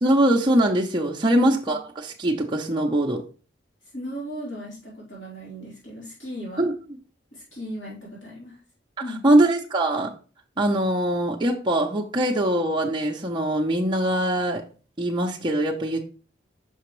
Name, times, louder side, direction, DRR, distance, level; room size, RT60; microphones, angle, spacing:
voice 1, 0.0-3.2 6.6-6.7 9.2-10.1 10.6-14.6 15.0-16.0, right 1 dB, 25° right, -1 dB, 0.6 m, -22 dB
voice 2, 1.2-1.8 3.8-6.7 7.3-8.6 9.0-9.2, left 1 dB, 80° left, -7 dB, 3.5 m, -36 dB
5.9 x 5.5 x 3.1 m, 0.37 s
head